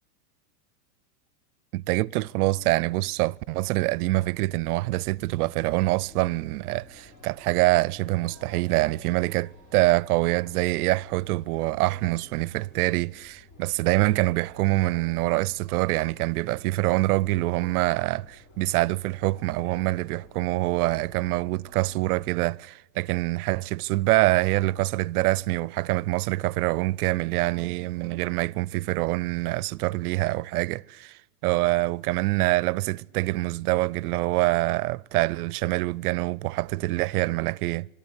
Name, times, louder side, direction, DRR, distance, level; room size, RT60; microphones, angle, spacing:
voice 1, 1.7-37.9, right 19 dB, 65° right, 0.6 m, -25 dB
sound 1, 4.2-22.3, left 2 dB, 45° left, 5.8 m, -53 dB
sound 2, 8.8-12.5 13.1-13.2 13.4-13.5, right 11 dB, 30° right, 1.1 m, -54 dB
26.0 x 13.0 x 9.8 m
supercardioid pair, 150°, 49 cm